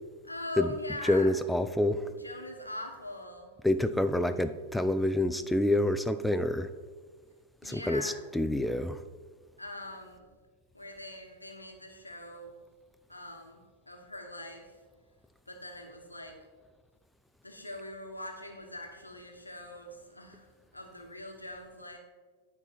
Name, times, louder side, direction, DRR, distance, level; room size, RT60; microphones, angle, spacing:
voice 1, 0.2-1.3 2.2-3.5 7.6-8.2 9.6-10.3 10.7-12.5 13.1-13.6 13.9-14.8 15.5-16.4 17.4-22.0, left 1 dB, 85° left, 3 dB, 1.1 m, -42 dB
voice 2, 1.0-2.0 3.6-6.7 7.6-9.0, left 1 dB, 5° left, 10 dB, 0.3 m, -27 dB
9.6 x 4.5 x 4.4 m, 1.5 s
figure-of-eight pair, 90°, 0 cm